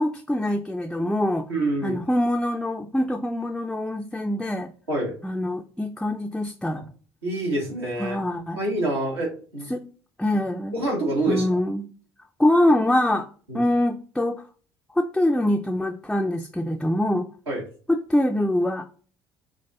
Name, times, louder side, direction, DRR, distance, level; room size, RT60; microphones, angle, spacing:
voice 1, 0.0-1.5 1.8-4.7 5.2-6.8 8.0-8.6 9.7-9.8 10.2-10.7 11.3-11.9 12.4-13.3 13.5-14.5 15.0-17.3 17.9-18.8, left 1 dB, 5° left, 3 dB, 0.4 m, -24 dB
voice 2, 1.5-2.0 4.9-5.1 7.2-8.2 8.6-9.7 10.7-11.6 13.5-13.6 17.5-17.6, right 2 dB, 85° right, -3 dB, 1.5 m, -26 dB
5.2 x 2.4 x 2.8 m, 0.40 s
figure-of-eight pair, 55°, 13 cm